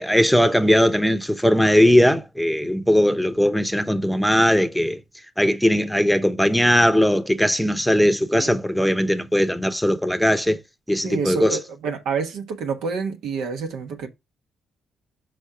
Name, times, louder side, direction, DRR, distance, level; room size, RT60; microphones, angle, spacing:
voice 1, 0.0-5.0 5.4-10.6 10.9-11.6, equal, ahead, 0.8 m, -19 dB
voice 2, 11.0-14.1, right 5 dB, 80° right, 1.2 m, -28 dB
5.2 x 3.4 x 5.7 m
supercardioid pair, 70°, 0 cm